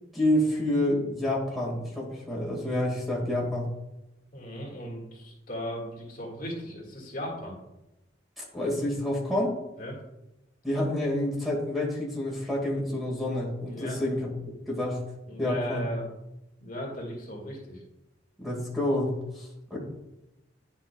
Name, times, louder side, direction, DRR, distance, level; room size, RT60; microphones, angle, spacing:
voice 1, 0.1-3.7 8.4-9.5 10.6-14.3 14.7-15.0 15.4-15.9 18.4-19.8, left 1 dB, ahead, -3 dB, 2.0 m, -28 dB
voice 2, 4.3-7.6 9.8-10.0 13.7-14.0 15.3-16.1 16.6-17.8, equal, 50° left, -3 dB, 2.0 m, -37 dB
10.5 x 5.6 x 2.4 m, 0.92 s
head